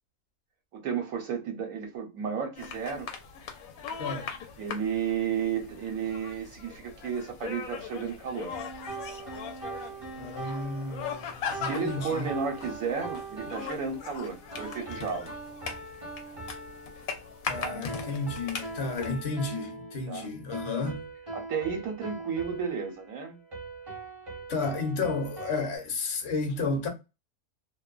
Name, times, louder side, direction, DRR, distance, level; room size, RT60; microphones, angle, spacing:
voice 1, 0.7-3.1 4.6-8.5 11.5-15.3 17.6-17.8 20.1-20.3 21.3-23.4, right 6 dB, 75° right, 1.0 m, -33 dB
sound 1, 2.5-19.1, left 6 dB, 75° left, 1.0 m, -40 dB
voice 2, 4.0-4.3 10.2-12.3 17.4-21.0 24.5-26.9, left 3 dB, 55° left, 0.9 m, -32 dB
sound 2, 8.5-25.8, right 3 dB, 30° right, 0.6 m, -42 dB
2.6 x 2.2 x 2.3 m
omnidirectional pair, 1.5 m